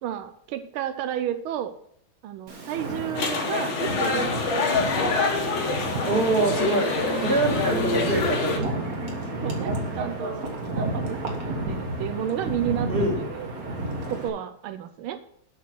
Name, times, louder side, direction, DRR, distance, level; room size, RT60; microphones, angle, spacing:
voice 1, 0.0-1.7 2.2-4.7 7.1-7.6 9.3-10.5 10.7-13.5 14.1-15.2, right 10 dB, 85° right, 9 dB, 1.5 m, -32 dB
Wind, 2.5-14.3, right 2 dB, 45° right, 1.8 m, -31 dB
sound 1, 3.1-8.6, left 4 dB, 70° left, 2.2 m, -26 dB
voice 2, 6.1-6.9 7.2-8.7 12.9-13.1, right 2 dB, 30° right, 0 dB, 2.2 m, -24 dB
8.4 x 6.3 x 6.2 m, 0.67 s
omnidirectional pair, 2.3 m